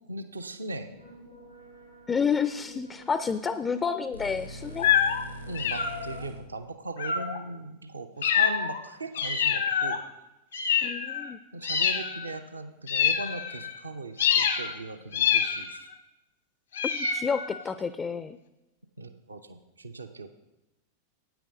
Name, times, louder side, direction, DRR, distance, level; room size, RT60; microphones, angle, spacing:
voice 1, 0.1-0.9 5.5-10.0 11.5-15.9 19.0-20.3, right 2 dB, 75° right, 9 dB, 0.6 m, -38 dB
sound 1, 0.9-6.3, right 1 dB, 90° left, 3.0 m, -45 dB
voice 2, 2.1-4.9 10.8-11.4 16.8-18.4, left 6 dB, 20° left, 13 dB, 0.3 m, -30 dB
sound 2, 4.8-5.2 5.6-6.2 7.0-7.4 8.2-8.8 9.1-10.0 10.5-11.3 11.6-12.3 12.9-13.8 14.2-14.7 15.1-15.9 16.7-17.6, left 8 dB, 65° left, 0.9 m, -26 dB
9.1 x 8.9 x 5.1 m, 0.99 s
figure-of-eight pair, 90°, 0 cm